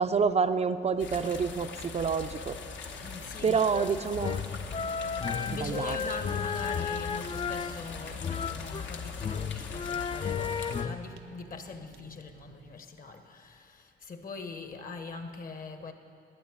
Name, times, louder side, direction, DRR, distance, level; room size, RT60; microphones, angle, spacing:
voice 1, 0.0-2.6 3.4-4.5 5.5-6.0, right 5 dB, 35° right, 0.4 m, -28 dB
sound 1, 1.0-10.8, left 5 dB, 70° left, 1.1 m, -40 dB
voice 2, 2.9-3.9 5.2-15.9, left 4 dB, 45° left, 1.2 m, -43 dB
Fire, 2.9-12.7, right 5 dB, 85° right, 0.9 m, -54 dB
sound 2, 3.7-8.9 9.2-11.0, left 6 dB, 25° left, 0.4 m, -34 dB
11.5 x 8.9 x 8.7 m
cardioid pair, 90°, 20 cm